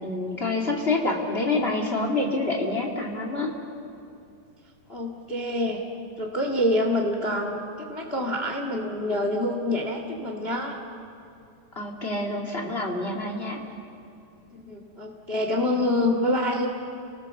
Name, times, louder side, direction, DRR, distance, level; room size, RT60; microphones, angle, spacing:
voice 1, 0.0-3.5 11.8-13.6, left 2 dB, 20° left, 0 dB, 1.9 m, -27 dB
voice 2, 4.9-5.8 6.2-7.6 7.9-10.8 14.5-16.7, left 1 dB, 45° left, 3 dB, 0.7 m, -26 dB
30.0 x 19.5 x 6.8 m, 2.7 s
omnidirectional pair, 4.5 m